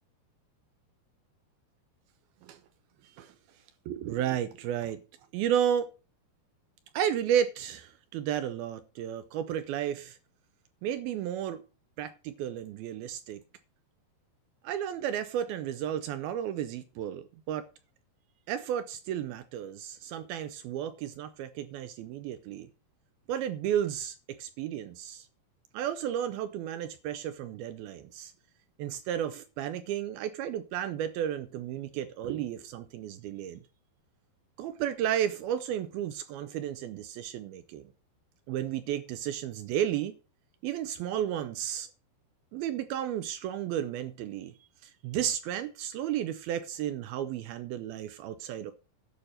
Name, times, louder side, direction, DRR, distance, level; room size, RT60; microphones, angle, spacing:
voice 1, 3.0-3.4 3.9-5.0 5.3-5.9 6.9-10.2 10.8-11.6 12.0-13.4 14.6-17.7 18.5-22.7 23.3-25.3 25.7-28.3 28.8-33.6 34.6-37.9 38.5-40.1 40.6-41.9 42.5-44.5 44.8-48.7, right 10 dB, 80° right, 2.4 m, -33 dB
11.5 x 5.7 x 6.4 m
omnidirectional pair, 4.7 m